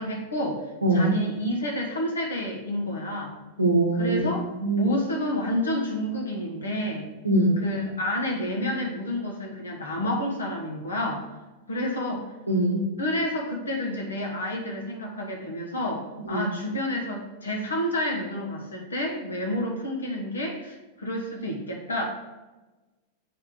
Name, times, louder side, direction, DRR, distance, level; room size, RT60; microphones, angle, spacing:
voice 1, 0.0-0.7 0.9-3.3 3.9-7.1 7.6-11.2 11.7-12.3 13.0-22.0, left 1 dB, 75° left, 1 dB, 1.0 m, -29 dB
voice 2, 0.8-1.2 3.6-4.3 4.6-4.9 7.2-7.6 12.5-12.9 16.3-16.4, right 2 dB, 85° right, 1 dB, 0.8 m, -22 dB
7.7 x 3.4 x 3.8 m, 1.1 s
figure-of-eight pair, 90°, 0 cm